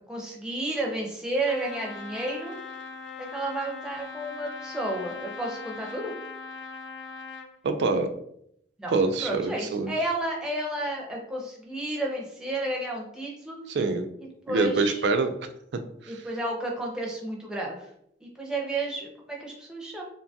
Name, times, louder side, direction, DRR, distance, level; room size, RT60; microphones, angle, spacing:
voice 1, 0.1-2.6 3.2-6.1 8.8-8.9 9.2-13.6 14.4-15.0 16.1-17.9 18.2-20.1, right 1 dB, 5° right, -2 dB, 0.4 m, -31 dB
Trumpet, 1.5-7.5, left 4 dB, 75° left, 0.3 m, -40 dB
voice 2, 7.6-8.1 8.9-9.9 13.7-14.1 14.5-15.3, right 3 dB, 75° right, 7 dB, 0.3 m, -25 dB
2.9 x 2.1 x 2.7 m, 0.73 s
head